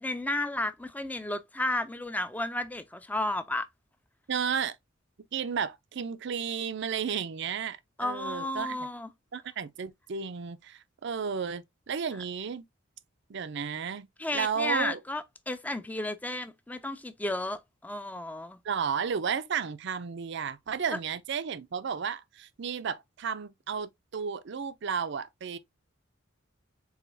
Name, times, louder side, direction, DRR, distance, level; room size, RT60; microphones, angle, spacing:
voice 1, 0.0-3.7 8.0-9.1 14.2-18.6 20.9-21.0, left 1 dB, 10° left, 0.4 m, -33 dB
voice 2, 4.3-4.8 5.3-8.8 9.3-12.6 13.3-14.1 14.3-15.0 18.6-25.6, right 6 dB, 60° right, 0.5 m, -33 dB
4.8 x 3.8 x 2.6 m
head